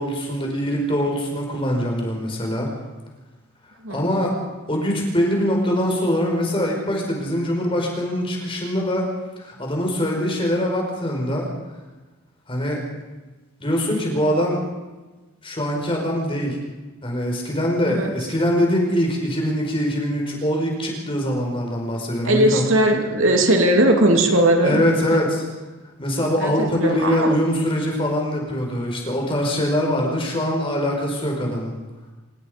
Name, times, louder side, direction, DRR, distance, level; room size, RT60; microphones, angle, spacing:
voice 1, 0.0-2.7 3.9-4.3 4.7-9.1 9.4-11.5 12.5-12.8 13.6-14.6 15.4-16.6 17.0-22.6 24.6-25.4 26.0-31.7, equal, 25° left, 0 dB, 5.2 m, -23 dB
voice 2, 22.2-24.8 25.1-25.2 26.4-27.3, right 1 dB, 60° right, 3 dB, 2.8 m, -18 dB
26.0 x 19.5 x 5.3 m, 1.2 s
head